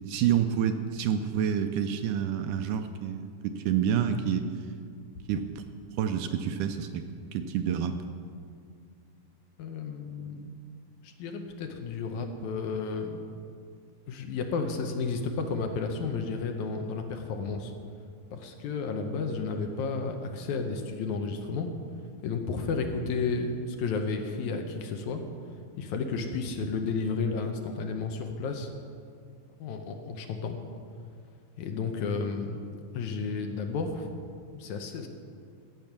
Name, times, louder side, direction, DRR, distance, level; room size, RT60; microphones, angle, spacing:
voice 1, 0.0-4.5 5.3-5.6 6.0-7.0 7.3-8.0, right 8 dB, 80° right, 8 dB, 2.0 m, -28 dB
voice 2, 9.6-10.6 11.0-13.3 14.1-17.7 18.3-21.7 22.2-25.2 25.8-28.7 29.6-30.6 31.6-32.6 32.9-34.1 34.5-35.1, left 4 dB, 75° left, 4 dB, 2.0 m, -32 dB
14.0 x 8.4 x 5.9 m, 2.3 s
omnidirectional pair, 3.9 m